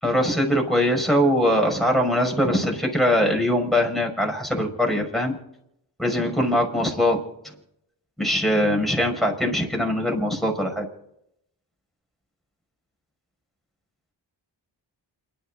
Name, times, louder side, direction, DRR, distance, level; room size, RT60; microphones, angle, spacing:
voice 1, 0.0-5.3 6.0-7.2 7.4-7.5 8.2-10.8, equal, ahead, 1 dB, 5.7 m, -22 dB
28.5 x 11.5 x 3.9 m, 0.78 s
cardioid pair, 45°, 47 cm